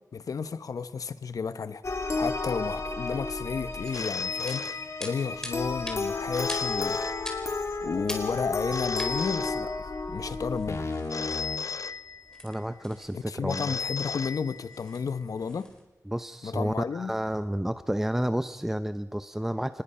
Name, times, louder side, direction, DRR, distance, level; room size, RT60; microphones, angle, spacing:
voice 1, 0.1-1.8 2.2-7.0 7.8-9.7 10.1-10.9 13.1-15.7 16.4-17.1, left 5 dB, 90° left, 0.9 m, -32 dB
sound 1, 1.8-11.6, left 3 dB, 55° left, 2.5 m, -32 dB
sound 2, 3.6-15.8, left 1 dB, 10° left, 4.5 m, -46 dB
Telephone, 3.9-5.4 6.3-7.8 8.7-10.2 11.1-12.6 13.5-15.0, left 5 dB, 75° left, 0.6 m, -35 dB
voice 2, 12.4-13.7 16.1-19.8, equal, 5° right, 0.7 m, -31 dB
25.0 x 21.0 x 5.6 m
wide cardioid pair, 75°, 6 cm